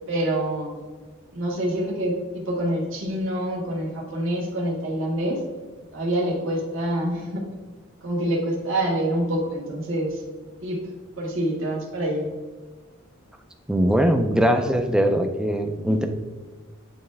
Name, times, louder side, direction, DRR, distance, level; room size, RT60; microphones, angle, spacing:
voice 1, 0.1-0.7 1.3-5.4 5.9-7.4 8.0-10.2 10.6-10.8 11.2-12.3 15.9-16.1, right 1 dB, 65° right, -5 dB, 1.5 m, -26 dB
voice 2, 13.7-16.1, equal, 5° right, 5 dB, 0.4 m, -21 dB
9.1 x 3.2 x 3.3 m, 1.4 s
head